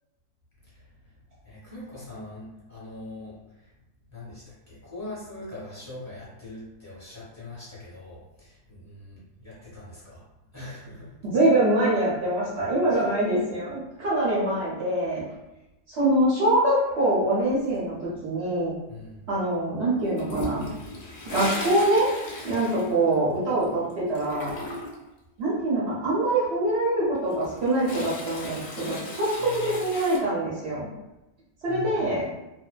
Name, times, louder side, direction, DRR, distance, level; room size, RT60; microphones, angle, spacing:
voice 1, 1.4-3.7 4.1-10.2 10.5-11.1 12.9-13.4 18.9-19.2 29.4-29.7 31.7-32.1, left 2 dB, 15° left, -10 dB, 0.9 m, -42 dB
voice 2, 11.3-15.2 15.9-18.7 19.3-20.7 21.2-22.1 22.4-24.6 25.4-30.9 31.6-32.2, right 1 dB, 55° right, -7 dB, 0.8 m, -24 dB
Toilet flush, 20.2-23.6 23.9-25.1 27.1-30.2, left 1 dB, 65° left, 0.8 m, -36 dB
2.6 x 2.1 x 2.3 m, 0.96 s
omnidirectional pair, 1.6 m